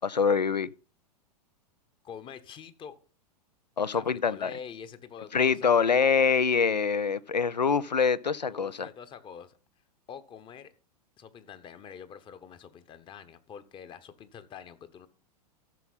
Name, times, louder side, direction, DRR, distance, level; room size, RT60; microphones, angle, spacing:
voice 1, 0.0-0.7 3.8-4.5 5.3-8.9, left 6 dB, 85° left, 0.5 m, -25 dB
voice 2, 2.0-3.0 3.9-5.7 6.0-6.2 8.5-9.6 10.1-10.7 11.2-15.1, left 7 dB, 25° left, 0.9 m, -45 dB
13.5 x 6.1 x 4.1 m
figure-of-eight pair, 95°, 21 cm